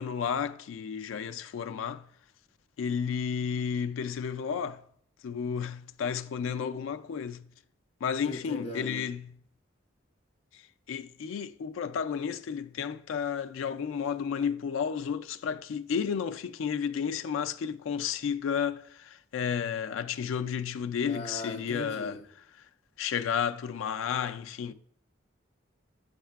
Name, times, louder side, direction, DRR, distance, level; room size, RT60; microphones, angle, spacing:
voice 1, 0.0-2.1 2.8-4.8 5.2-7.5 8.0-9.3 10.5-10.6 10.9-22.2 23.0-24.7, left 7 dB, 90° left, 0.3 m, -32 dB
voice 2, 8.3-9.1 21.0-22.2, equal, 35° left, 0.7 m, -39 dB
6.5 x 6.3 x 2.3 m
head